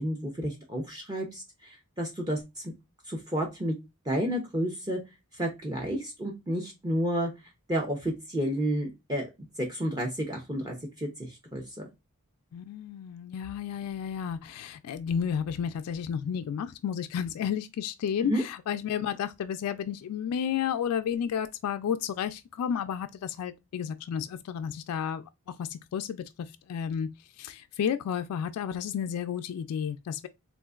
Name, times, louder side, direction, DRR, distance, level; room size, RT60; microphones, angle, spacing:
voice 1, 0.0-2.4 3.1-3.7 4.1-5.0 5.3-7.3 7.7-9.3 9.6-11.9 18.2-18.4, equal, 20° right, 0.6 m, -31 dB
voice 2, 12.5-27.1 27.4-30.3, left 8 dB, 90° left, 0.3 m, -32 dB
3.7 x 2.4 x 2.3 m
head